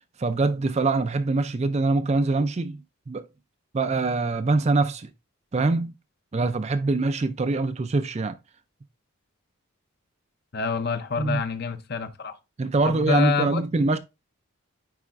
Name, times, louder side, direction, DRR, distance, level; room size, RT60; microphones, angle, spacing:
voice 1, 0.2-2.8 3.1-3.3 3.7-5.1 5.5-5.9 6.3-8.4 11.2-11.4 12.6-14.0, right 3 dB, 30° right, 0.4 m, -24 dB
voice 2, 10.5-12.4 12.8-13.6, left 5 dB, 45° left, 0.7 m, -27 dB
9.6 x 4.2 x 2.5 m
head